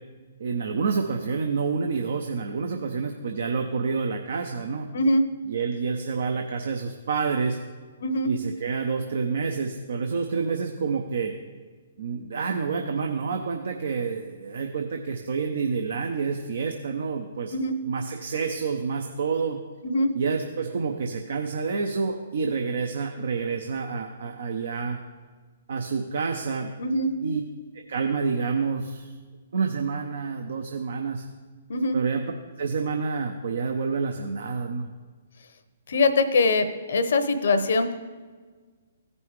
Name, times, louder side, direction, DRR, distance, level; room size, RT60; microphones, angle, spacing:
voice 1, 0.4-4.9 5.4-7.6 8.2-11.3 12.0-17.6 17.8-19.6 20.1-25.0 25.7-26.7 27.2-27.4 27.7-29.1 29.5-31.2 31.9-32.2 32.6-34.9, right 5 dB, 65° right, 4 dB, 0.7 m, -28 dB
voice 2, 4.9-5.2 8.0-8.3 17.5-17.7 19.8-20.1 26.8-27.1 31.7-32.0 35.9-37.9, left 2 dB, 65° left, 9 dB, 0.8 m, -22 dB
15.5 x 5.4 x 3.1 m, 1.5 s
figure-of-eight pair, 130°, 0 cm